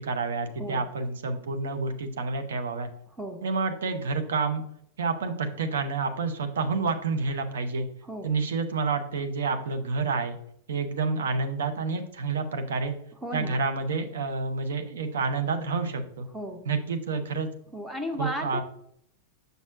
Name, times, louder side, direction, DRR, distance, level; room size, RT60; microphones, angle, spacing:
voice 1, 0.0-2.9 3.4-4.6 5.0-7.9 8.2-10.4 10.7-12.9 13.3-16.3 16.6-17.5 18.2-18.6, right 4 dB, 65° right, 7 dB, 0.8 m, -29 dB
voice 2, 8.0-8.3 13.2-13.6 16.3-16.7 17.7-18.6, equal, 5° right, 5 dB, 0.7 m, -34 dB
6.7 x 6.2 x 2.5 m, 0.70 s
figure-of-eight pair, 90°, 0 cm